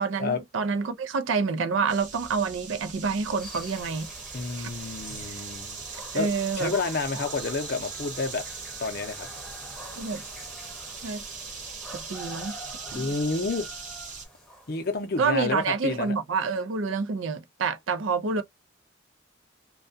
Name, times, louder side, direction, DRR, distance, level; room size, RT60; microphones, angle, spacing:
voice 1, 0.0-4.1 4.6-4.7 6.1-6.7 10.0-10.2 11.0-11.2 11.9-12.6 12.9-13.0 15.2-18.4, right 4 dB, 75° right, 0.4 m, -28 dB
sound 1, 1.9-14.3, right 5 dB, 40° right, 0.7 m, -40 dB
sound 2, 3.4-15.3, equal, ahead, 0.8 m, -45 dB
voice 2, 4.3-5.8 6.1-6.3 6.6-8.5 8.8-9.3 12.9-13.7 14.7-16.1, left 3 dB, 50° left, 0.6 m, -29 dB
2.3 x 2.1 x 2.6 m
head